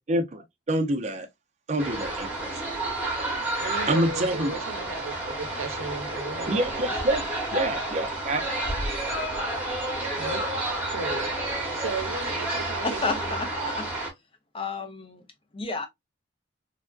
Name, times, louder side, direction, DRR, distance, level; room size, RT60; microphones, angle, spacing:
voice 1, 0.1-1.3 1.7-2.5 3.9-4.6 6.5-8.4, right 1 dB, 35° right, 0.5 m, -27 dB
sound 1, 1.8-14.1, right 1 dB, 5° right, 1.0 m, -30 dB
voice 2, 3.6-6.9 10.2-10.4 10.9-11.3 11.7-13.4, right 4 dB, 75° right, 0.7 m, -35 dB
voice 3, 12.8-13.9 14.5-15.2 15.5-15.9, left 3 dB, 25° left, 0.5 m, -31 dB
3.3 x 2.5 x 2.2 m
head